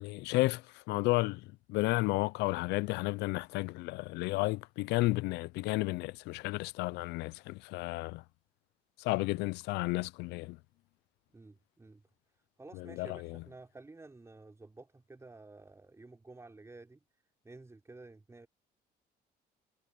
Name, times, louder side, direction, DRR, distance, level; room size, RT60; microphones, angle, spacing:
voice 1, 0.0-8.2 9.0-10.6 12.7-13.4, left 21 dB, 90° left, 0.5 m, -32 dB
voice 2, 11.3-12.0 12.6-17.0 17.4-18.5, right 3 dB, 15° right, 5.1 m, -52 dB
cardioid pair, 110°, 17 cm